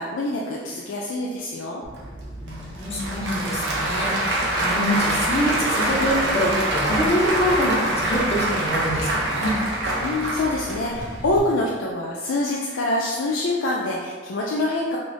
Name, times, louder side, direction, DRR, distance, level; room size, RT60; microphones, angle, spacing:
voice 1, 0.0-1.8 10.0-15.0, left 2 dB, 90° left, -3 dB, 0.4 m, -25 dB
Applause / Crowd, 1.8-11.4, right 1 dB, 70° right, 0.7 m, -25 dB
voice 2, 2.4-9.6, equal, 35° left, -4 dB, 0.7 m, -25 dB
3.2 x 2.4 x 3.8 m, 1.5 s
head